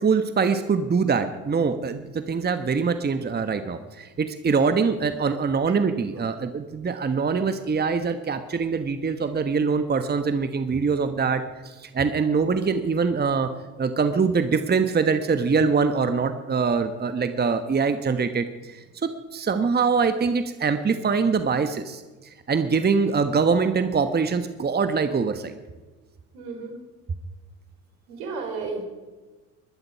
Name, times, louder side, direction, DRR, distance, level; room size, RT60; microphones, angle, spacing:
voice 1, 0.0-13.5 13.8-22.0 22.5-25.5, right 5 dB, 20° right, 10 dB, 1.2 m, -23 dB
voice 2, 26.3-26.7 28.1-28.8, right 4 dB, 75° right, 4 dB, 4.2 m, -33 dB
21.0 x 12.0 x 5.7 m, 1.2 s
hypercardioid pair, 65°, 46 cm